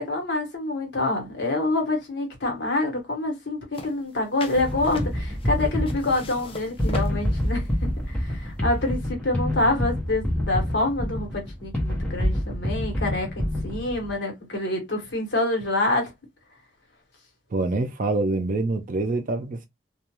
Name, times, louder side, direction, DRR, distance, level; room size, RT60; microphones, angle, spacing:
voice 1, 0.0-16.1, left 2 dB, 60° left, 1.1 m, -27 dB
sound 1, 3.7-9.1, left 2 dB, 30° left, 0.5 m, -40 dB
sound 2, 4.5-14.1, equal, 5° left, 0.8 m, -27 dB
voice 2, 17.5-19.7, right 2 dB, 45° right, 0.4 m, -25 dB
2.3 x 2.2 x 2.9 m
head